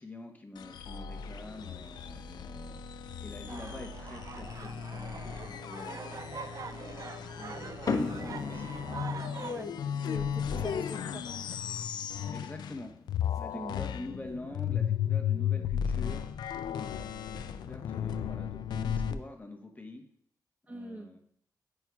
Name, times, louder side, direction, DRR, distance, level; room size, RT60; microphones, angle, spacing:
voice 1, 0.0-6.3 6.9-8.7 12.3-12.9 13.4-16.3 16.7-20.0 20.7-21.2, left 2 dB, 20° left, 3 dB, 1.0 m, -46 dB
sound 1, 0.6-12.8 13.1-19.1, left 8 dB, 80° left, 0.4 m, -35 dB
sound 2, 3.5-9.6, right 5 dB, 55° right, 0.4 m, -44 dB
sound 3, 7.9-14.6, left 4 dB, 55° left, 0.9 m, -39 dB
voice 2, 9.4-9.7 10.0-11.6 13.5-13.8 20.7-21.1, right 1 dB, 20° right, 3 dB, 0.8 m, -42 dB
10.5 x 4.5 x 2.3 m, 0.67 s
cardioid pair, 60°, 7 cm